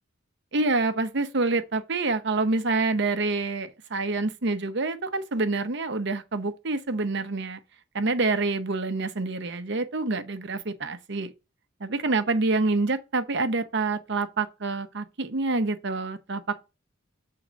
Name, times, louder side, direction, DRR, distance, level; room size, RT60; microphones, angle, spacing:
voice 1, 0.5-7.6 7.9-11.3 11.8-16.4, right 3 dB, 60° right, 0.8 m, -27 dB
7.4 x 3.8 x 5.2 m
head